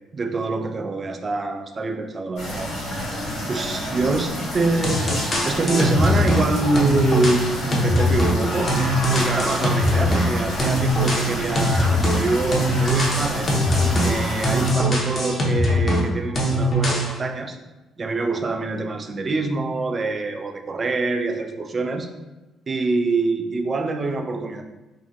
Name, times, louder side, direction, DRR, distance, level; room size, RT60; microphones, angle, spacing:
voice 1, 0.1-2.7 3.5-8.8 9.1-13.5 14.0-17.6 18.0-22.1 22.7-24.6, right 3 dB, 35° right, 5 dB, 0.3 m, -25 dB
sound 1, 2.3-14.7, equal, 85° left, 1.2 m, -29 dB
sound 2, 4.8-6.5 6.7-10.3 10.6-16.1 16.3-17.1, equal, 40° left, 0.7 m, -21 dB
2.7 x 2.6 x 2.3 m, 1.0 s
cardioid pair, 85°, 0 cm